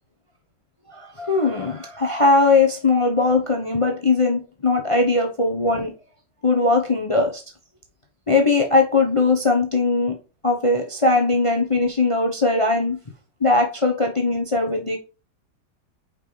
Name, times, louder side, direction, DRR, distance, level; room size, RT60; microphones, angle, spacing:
voice 1, 0.9-5.9 6.4-7.4 8.3-10.2 10.4-13.0 13.4-15.0, left 3 dB, 25° left, 0.7 m, -20 dB
5.4 x 5.2 x 5.0 m
omnidirectional pair, 1.9 m